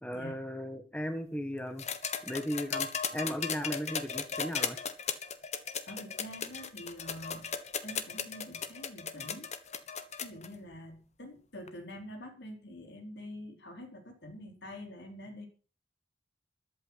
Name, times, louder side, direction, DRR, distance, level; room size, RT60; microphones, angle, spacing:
voice 1, 0.0-1.9 2.2-4.8, equal, 5° left, 7 dB, 1.4 m, -36 dB
sound 1, 1.8-10.5 11.7-11.8, left 6 dB, 40° left, 1.4 m, -36 dB
voice 2, 5.9-7.5 7.8-9.5 10.2-15.5, equal, 65° left, 4 dB, 4.3 m, -46 dB
14.0 x 12.0 x 5.8 m, 0.40 s
head